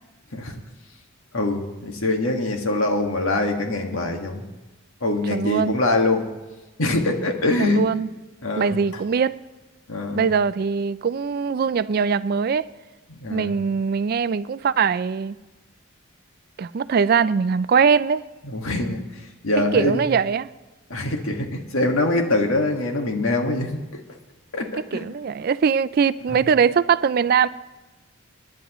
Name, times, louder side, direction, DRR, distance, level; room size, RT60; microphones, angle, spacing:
voice 1, 1.3-4.5 5.0-6.3 6.8-7.9 8.4-8.8 9.9-10.3 13.1-13.6 18.4-20.1 20.9-23.8 24.5-25.0 26.3-26.5, left 2 dB, 80° left, 1.8 m, -24 dB
voice 2, 5.3-5.8 7.6-8.1 8.6-9.4 10.1-12.7 13.3-15.4 16.6-18.2 19.7-20.5 24.9-27.5, right 6 dB, 45° right, 0.3 m, -21 dB
25.0 x 10.5 x 3.1 m
head